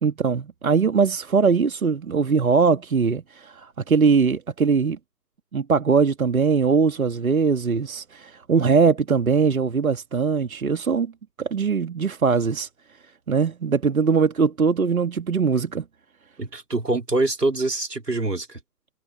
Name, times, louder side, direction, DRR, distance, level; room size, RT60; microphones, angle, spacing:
voice 1, 0.0-5.0 5.5-11.1 11.4-12.7 13.3-15.8, right 5 dB, 60° right, 1.9 m, -21 dB
voice 2, 16.4-18.6, right 2 dB, 75° right, 3.5 m, -25 dB
figure-of-eight pair, 140°, 48 cm